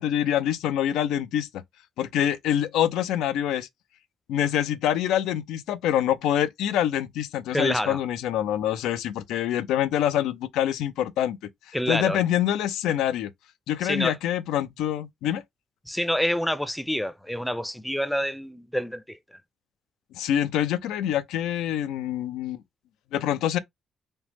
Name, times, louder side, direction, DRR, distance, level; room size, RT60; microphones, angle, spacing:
voice 1, 0.0-1.6 2.0-3.7 4.3-11.4 11.7-13.3 13.7-15.4 20.1-22.6 23.1-23.6, left 11 dB, 90° left, 0.3 m, -25 dB
voice 2, 7.5-8.0 11.7-12.2 13.8-14.1 15.9-19.4, equal, 5° left, 0.4 m, -27 dB
3.2 x 2.0 x 2.9 m
cardioid pair, 90°, 0 cm